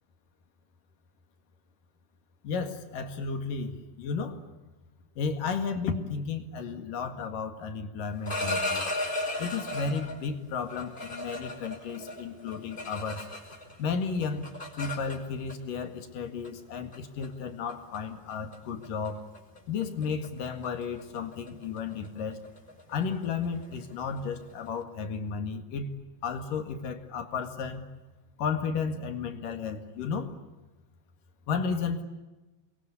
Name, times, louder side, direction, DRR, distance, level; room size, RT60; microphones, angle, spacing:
voice 1, 2.4-4.4 5.2-8.9 9.4-13.3 13.8-19.3 19.7-22.4 22.9-25.9 26.2-27.9 28.4-30.3 31.5-32.0, left 5 dB, 65° left, 7 dB, 3.5 m, -33 dB
sound 1, 8.1-10.2 10.7-13.7 14.0-15.5 16.4-16.6 16.9-17.3 17.7-18.0 18.3-18.5 18.8-19.1 19.3-24.7, left 1 dB, 10° left, 5.1 m, -36 dB
29.0 x 22.5 x 8.5 m, 1.1 s
omnidirectional pair, 4.4 m